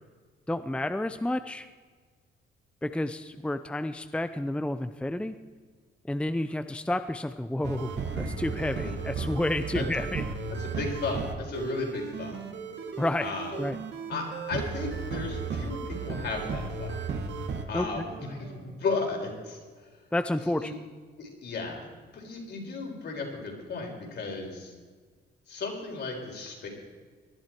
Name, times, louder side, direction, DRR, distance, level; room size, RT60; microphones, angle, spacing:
voice 1, 0.5-1.7 2.8-5.4 6.0-10.2 13.0-13.3 13.6-13.8 17.7-17.9 20.1-20.8, left 1 dB, 5° left, 10 dB, 0.6 m, -30 dB
sound 1, 7.6-17.6, right 5 dB, 65° right, 1.8 m, -34 dB
voice 2, 10.6-12.4 13.2-13.6 14.1-16.9 17.7-19.6 20.6-20.7 21.2-21.9 22.1-24.7 25.5-26.7, left 3 dB, 60° left, 0 dB, 4.2 m, -34 dB
Human voice, 18.0-19.7, right 6 dB, 85° right, 2.3 m, -51 dB
19.0 x 11.5 x 4.6 m, 1.5 s
cardioid pair, 90°, 20 cm